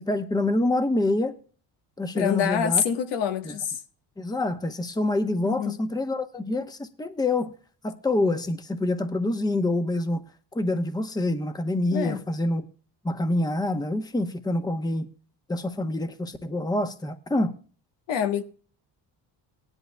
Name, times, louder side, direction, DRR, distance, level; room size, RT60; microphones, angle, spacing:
voice 1, 0.0-1.3 2.0-2.8 3.4-3.6 4.2-7.5 7.8-10.2 10.5-12.7 13.0-15.1 15.5-17.5, left 2 dB, 10° left, 0.9 m, -26 dB
voice 2, 2.1-3.8 5.4-5.8 11.9-12.2 18.1-18.4, left 8 dB, 85° left, 1.4 m, -26 dB
18.0 x 11.0 x 2.3 m
cardioid pair, 115°, 42 cm